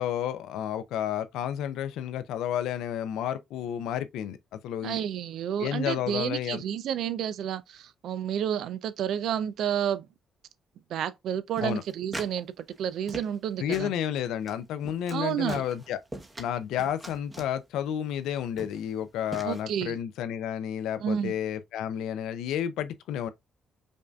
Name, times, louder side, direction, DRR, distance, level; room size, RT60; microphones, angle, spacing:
voice 1, 0.0-5.0 5.6-6.6 11.6-11.8 13.6-16.0 16.4-23.3, left 10 dB, 90° left, 0.4 m, -31 dB
voice 2, 4.8-10.1 10.9-13.9 15.1-15.6 19.4-20.0 21.0-21.3, right 9 dB, 75° right, 0.4 m, -30 dB
sound 1, 11.6-12.4 12.7-13.5 13.7-13.9 14.4-14.5 14.8-15.2 15.5-16.5 16.8-17.5 18.2-18.3 18.6-18.9 19.3-19.6, right 1 dB, 20° right, 0.9 m, -41 dB
5.2 x 2.6 x 2.3 m
cardioid pair, 90°, 0 cm